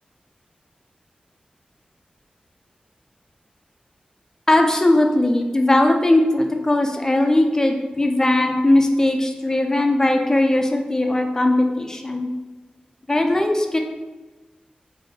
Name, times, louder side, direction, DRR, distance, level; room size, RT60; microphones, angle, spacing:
voice 1, 4.5-12.3 13.1-13.8, left 1 dB, 20° left, 4 dB, 0.4 m, -19 dB
4.1 x 2.6 x 2.7 m, 1.2 s
wide cardioid pair, 100°, 3 cm